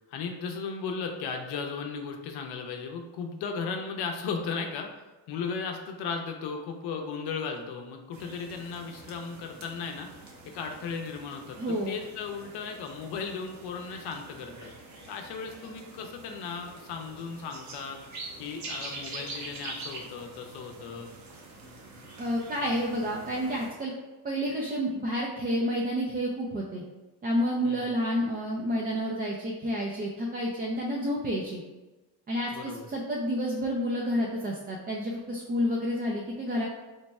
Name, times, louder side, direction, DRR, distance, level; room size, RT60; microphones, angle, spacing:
voice 1, 0.1-4.9 5.3-10.1 10.5-11.6 11.9-14.7 15.1-18.0 18.4-21.1 27.6-27.9 32.5-32.9, left 5 dB, 80° left, 4 dB, 0.7 m, -36 dB
sound 1, 8.1-23.7, right 2 dB, 45° right, 0.8 m, -45 dB
voice 2, 11.6-11.9 22.2-23.9 24.2-26.8 27.2-31.6 32.3-36.7, equal, 25° right, -3 dB, 0.4 m, -29 dB
3.3 x 2.2 x 4.1 m, 1.1 s
cardioid pair, 120°, 39 cm